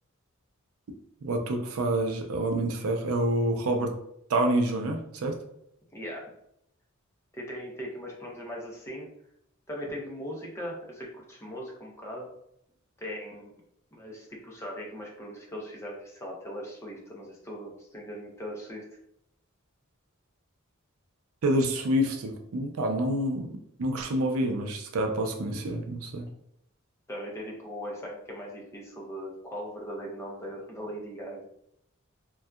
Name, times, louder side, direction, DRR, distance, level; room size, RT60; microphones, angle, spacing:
voice 1, 1.2-3.9 4.3-5.4 21.4-23.5 23.8-26.3, right 1 dB, 75° right, 4 dB, 0.5 m, -27 dB
voice 2, 5.9-6.3 7.3-9.1 9.7-12.3 13.0-13.5 13.9-18.8 27.1-31.5, equal, 15° left, -2 dB, 0.6 m, -39 dB
2.7 x 2.2 x 2.3 m, 0.75 s
head